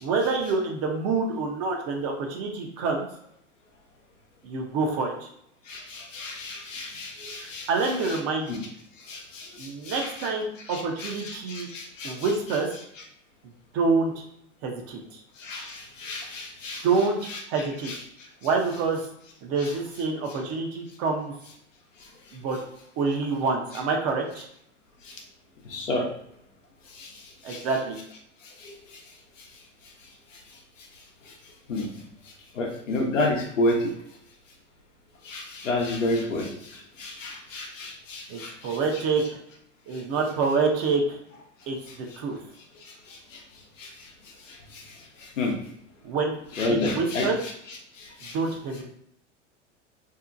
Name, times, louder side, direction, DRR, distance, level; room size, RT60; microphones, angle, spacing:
voice 1, 0.0-3.1 4.4-5.3 7.4-8.6 9.6-11.7 12.0-12.7 13.7-14.2 14.6-15.2 16.8-17.9 18.4-19.0 19.4-21.3 22.3-22.6 23.0-24.5 27.4-28.0 38.3-39.4 39.9-41.2 41.7-41.8 42.2-42.4 46.0-46.4 46.7-47.4 48.3-48.8, right 4 dB, 40° right, 2 dB, 0.7 m, -27 dB
voice 2, 5.7-7.7 8.0-8.2 8.5-8.6 9.1-10.3 10.7-12.3 15.4-16.8 17.3-17.4 17.8-18.0 19.6-19.7 25.7-26.1 27.0-27.1 27.5-27.6 28.6-28.7 31.7-31.9 32.6-33.8 35.2-36.5 37.0-38.8 43.3-43.4 43.8-43.9 44.7-44.8 45.4-45.5 46.5-47.5 48.0-48.3, left 2 dB, 90° left, 1 dB, 0.7 m, -30 dB
2.7 x 2.1 x 2.5 m, 0.72 s
hypercardioid pair, 95°, 37 cm